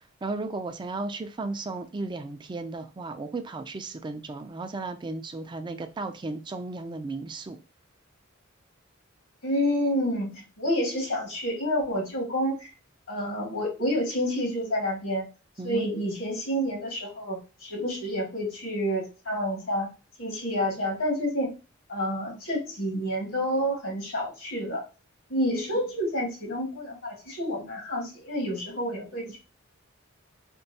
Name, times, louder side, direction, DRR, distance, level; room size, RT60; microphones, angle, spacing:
voice 1, 0.2-7.6 15.6-15.9, right 3 dB, 25° right, 0.4 m, -35 dB
voice 2, 9.4-12.7 13.1-15.2 15.6-19.9 20.2-21.6 21.9-24.8 25.3-29.4, equal, 75° left, 1.8 m, -29 dB
4.3 x 2.3 x 2.7 m
head